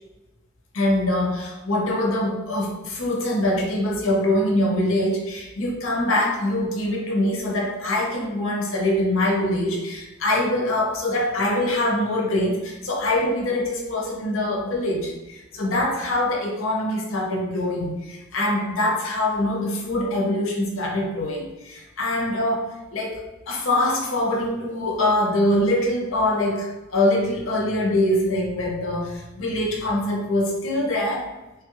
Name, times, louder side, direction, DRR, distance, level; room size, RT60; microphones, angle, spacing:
voice 1, 0.7-31.3, left 1 dB, 75° left, 0 dB, 0.7 m, -24 dB
3.3 x 2.3 x 2.9 m, 1.0 s
head